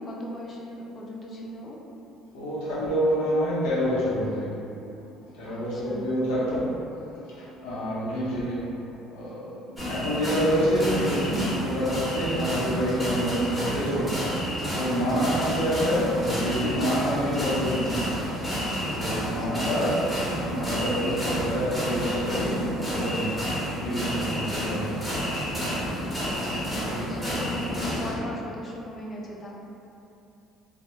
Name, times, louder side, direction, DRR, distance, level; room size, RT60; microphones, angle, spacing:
voice 1, 0.0-1.8 5.4-6.1 19.1-19.7 26.7-29.6, left 1 dB, 35° left, -2 dB, 0.4 m, -38 dB
voice 2, 2.3-4.5 5.3-6.7 7.4-8.7 9.1-14.2 14.7-18.1 18.7-20.0 20.5-23.5 23.8-25.0 26.6-27.2, equal, 80° left, -9 dB, 0.8 m, -27 dB
sound 1, 9.8-28.1, equal, 10° left, 0.9 m, -30 dB
2.2 x 2.0 x 2.9 m, 2.8 s
supercardioid pair, 80°, 0 cm